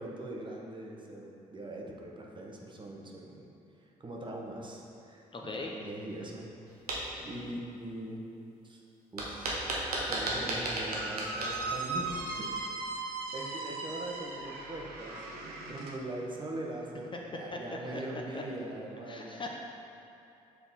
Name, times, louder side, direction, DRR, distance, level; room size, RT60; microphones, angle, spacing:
voice 1, 0.0-3.5 3.8-6.5 6.9-8.2 8.6-8.8 9.1-9.6 10.1-19.4, right 1 dB, 25° right, -1 dB, 1.0 m, -42 dB
voice 2, 5.3-5.7 7.3-7.5 17.5-18.4 19.1-19.6, left 2 dB, 25° left, 0 dB, 0.6 m, -40 dB
sound 1, 6.7-7.0 9.2-12.4, right 1 dB, 85° right, 0.8 m, -34 dB
Squeak, 9.9-16.0, right 3 dB, 55° right, 0.8 m, -38 dB
6.8 x 4.1 x 4.2 m, 2.7 s
figure-of-eight pair, 45°, 19 cm